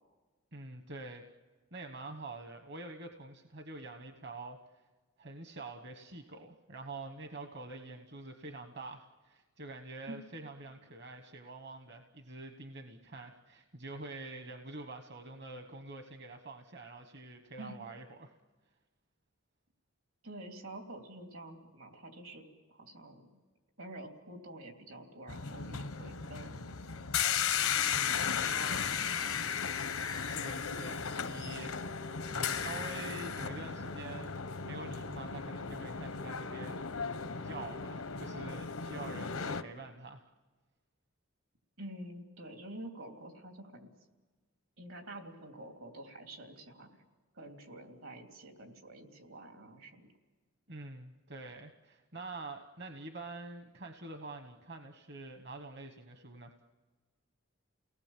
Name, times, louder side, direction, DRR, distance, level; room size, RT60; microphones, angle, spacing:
voice 1, 0.5-1.2 1.7-4.6 5.2-18.4 30.2-31.7 32.3-36.9 37.4-40.2 50.7-56.5, right 2 dB, 50° right, 5 dB, 1.2 m, -46 dB
voice 2, 20.2-22.4 22.7-23.3 23.8-26.6 27.7-29.6 41.8-43.9 44.8-47.0 47.3-50.1, right 1 dB, 80° right, 3 dB, 3.4 m, -48 dB
sound 1, 25.3-39.6, left 7 dB, 85° left, 1.0 m, -35 dB
29.5 x 19.0 x 7.5 m, 1.3 s
head